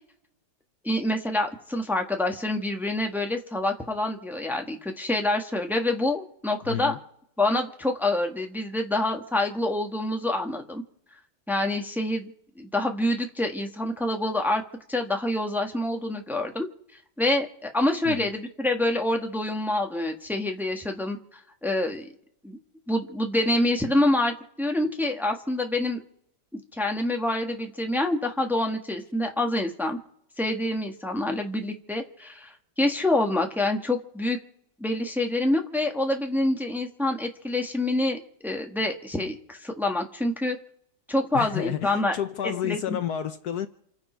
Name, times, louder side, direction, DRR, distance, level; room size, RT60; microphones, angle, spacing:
voice 1, 0.8-6.9 7.4-10.8 11.5-12.3 12.6-14.6 14.9-16.7 17.2-22.1 22.4-22.6 22.9-26.0 26.5-30.0 30.4-34.4 34.8-40.6 41.1-42.2 42.6-43.0, left 1 dB, ahead, 1.3 m, -26 dB
voice 2, 6.7-7.0 18.0-18.3 41.3-43.7, left 10 dB, 65° left, 1.2 m, -30 dB
28.5 x 10.5 x 4.5 m
omnidirectional pair, 2.0 m